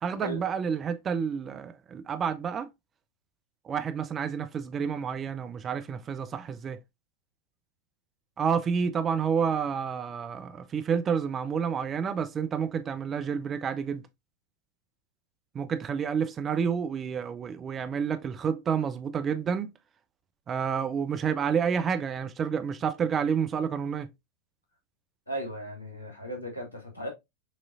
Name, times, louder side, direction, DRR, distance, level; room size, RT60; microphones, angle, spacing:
voice 1, 0.0-2.7 3.6-6.8 8.4-14.0 15.5-19.7 20.5-24.1, right 7 dB, 25° right, 0.5 m, -29 dB
voice 2, 25.3-27.1, right 1 dB, 80° left, 1.9 m, -36 dB
6.1 x 3.0 x 2.5 m
figure-of-eight pair, 90°, 0 cm